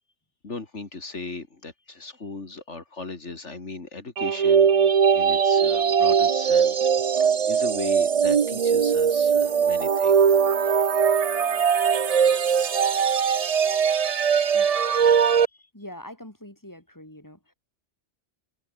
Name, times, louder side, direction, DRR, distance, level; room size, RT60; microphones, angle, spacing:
voice 1, 0.4-4.8 5.1-6.9 7.2-10.2 10.6-10.8 13.3-13.6 15.5-15.7, left 3 dB, 75° left, 3.1 m, -38 dB
sound 1, 4.2-15.5, right 7 dB, 40° right, 0.6 m, -20 dB
voice 2, 15.7-17.4, left 1 dB, 15° left, 5.8 m, -43 dB
omnidirectional pair, 1.2 m